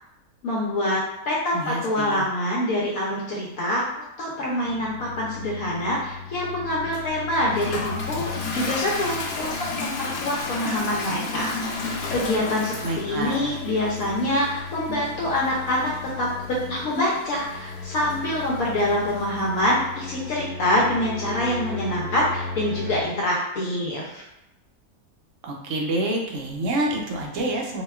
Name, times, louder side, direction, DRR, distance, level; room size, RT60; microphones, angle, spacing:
voice 1, 0.4-24.2, left 1 dB, 70° left, -4 dB, 1.0 m, -26 dB
voice 2, 1.5-2.2 12.8-13.5 25.4-27.8, right 1 dB, 65° right, 0 dB, 0.8 m, -27 dB
sound 1, 4.5-23.0, left 4 dB, 10° right, 0.8 m, -37 dB
Toilet flush, 6.9-19.7, left 3 dB, 90° left, 1.1 m, -34 dB
4.1 x 2.2 x 2.3 m, 0.90 s
omnidirectional pair, 1.6 m